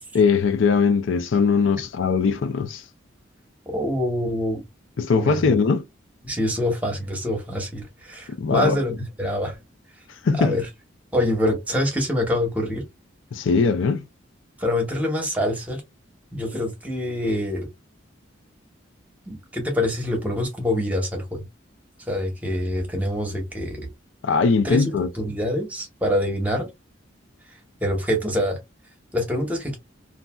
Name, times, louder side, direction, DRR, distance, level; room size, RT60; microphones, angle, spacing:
voice 1, 0.1-2.8 5.0-5.8 8.4-8.8 10.2-10.6 13.3-14.1 24.2-25.1, left 5 dB, 75° left, 0.4 m, -20 dB
voice 2, 3.7-4.6 5.1-5.4 6.2-8.9 9.2-9.6 10.3-10.7 11.1-12.8 14.6-15.8 16.3-17.7 19.3-21.4 22.1-23.9 24.6-26.7 27.8-28.6 29.1-29.8, left 1 dB, 10° right, 0.9 m, -25 dB
3.1 x 2.6 x 2.2 m
head